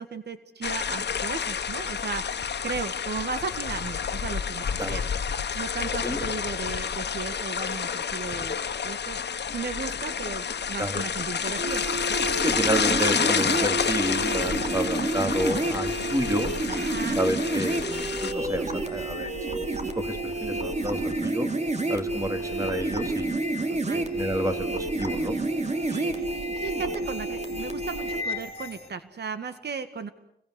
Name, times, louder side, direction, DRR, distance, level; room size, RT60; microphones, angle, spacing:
voice 1, 0.0-5.0 5.6-9.2 9.5-11.8 16.7-17.2 23.7-24.1 25.9-30.1, right 5 dB, 75° right, 10 dB, 1.9 m, -35 dB
sound 1, 0.6-18.3, left 7 dB, 80° left, 1.4 m, -29 dB
sound 2, 11.6-28.2, right 2 dB, 40° right, 3.1 m, -29 dB
voice 2, 12.4-16.5 17.2-19.6 20.0-21.5 21.9-25.4, right 1 dB, 20° right, 6 dB, 3.5 m, -30 dB
sound 3, 13.1-28.9, left 3 dB, 35° left, 2.9 m, -43 dB
30.0 x 22.5 x 8.2 m, 0.71 s
wide cardioid pair, 110°, 17 cm